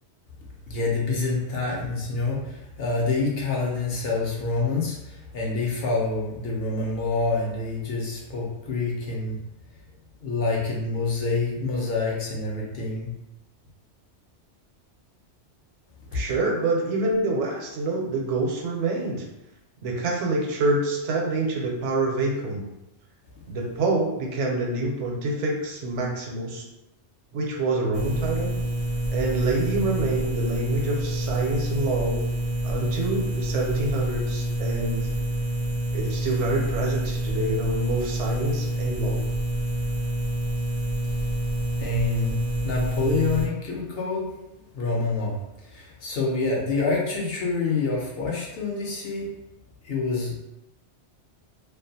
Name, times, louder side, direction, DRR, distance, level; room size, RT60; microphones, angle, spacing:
voice 1, 0.7-9.4 10.2-13.1 16.1-16.2 41.8-44.3 44.7-49.3 49.8-50.4, left 3 dB, 60° left, -3 dB, 0.8 m, -27 dB
voice 2, 16.1-19.3 19.8-22.6 23.5-26.6 27.3-28.5 29.1-32.2 32.6-35.1 35.9-39.2, right 2 dB, 85° right, 0 dB, 0.9 m, -26 dB
sound 1, 27.9-43.5, right 1 dB, 60° right, 0.5 m, -27 dB
2.4 x 2.2 x 2.6 m, 0.91 s
omnidirectional pair, 1.2 m